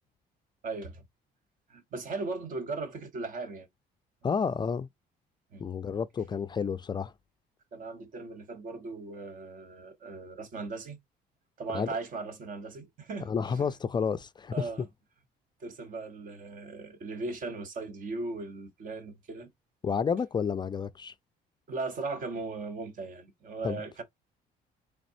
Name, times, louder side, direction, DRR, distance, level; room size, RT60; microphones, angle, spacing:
voice 1, 0.6-1.0 1.7-3.7 5.5-5.7 7.7-11.0 11.6-13.8 14.5-14.9 15.6-19.5 21.7-24.0, right 3 dB, 55° right, 1.2 m, -38 dB
voice 2, 4.2-4.9 5.6-7.1 11.7-11.9 13.3-14.5 19.8-21.1 23.6-23.8, left 6 dB, 25° left, 0.3 m, -30 dB
4.0 x 3.4 x 2.6 m
cardioid pair, 110°, 17 cm